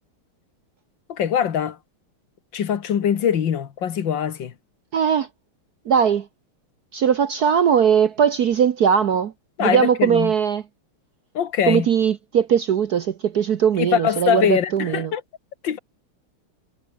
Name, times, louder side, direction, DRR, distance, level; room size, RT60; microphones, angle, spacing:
voice 1, 1.1-1.8 2.5-4.5 9.6-10.3 11.3-11.9 13.8-15.2 15.6-15.8, left 8 dB, 60° left, 2.1 m, -22 dB
voice 2, 4.9-5.3 5.9-6.2 6.9-9.3 9.6-10.6 11.7-15.1, right 8 dB, 55° right, 1.3 m, -19 dB
omnidirectional pair, 2.3 m